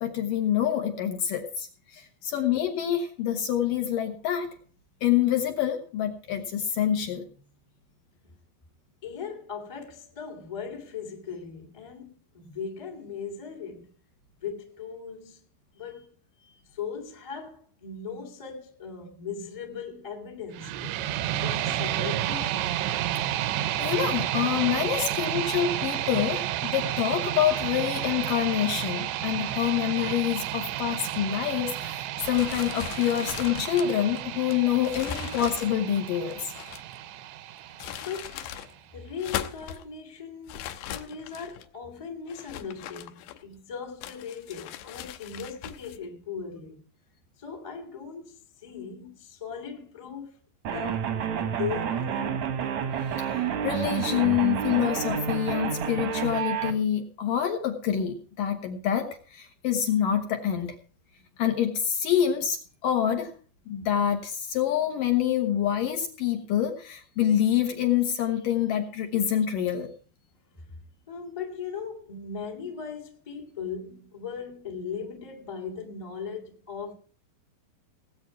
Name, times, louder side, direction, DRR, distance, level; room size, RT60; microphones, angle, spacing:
voice 1, 0.0-4.5 5.0-7.3 23.8-36.5 53.1-53.3 53.6-60.8 61.4-62.6 62.8-63.3 63.7-69.9, left 10 dB, 65° left, 2.5 m, -26 dB
voice 2, 9.0-13.9 14.4-15.4 15.7-16.1 16.7-20.8 21.3-22.7 24.9-25.4 37.8-38.5 38.9-46.7 47.4-50.4 50.7-52.4 70.5-70.7 71.1-76.9, left 6 dB, 20° left, 0.9 m, -38 dB
sound 1, 20.5-38.5, right 12 dB, 80° right, 3.0 m, -31 dB
sound 2, 32.2-37.0 37.6-38.7 39.1-39.8 40.5-41.7 42.3-43.6 44.0-46.0, left 11 dB, 80° left, 3.0 m, -39 dB
sound 3, 50.6-56.7, right 8 dB, 65° right, 1.8 m, -29 dB
18.5 x 8.5 x 4.6 m
omnidirectional pair, 5.1 m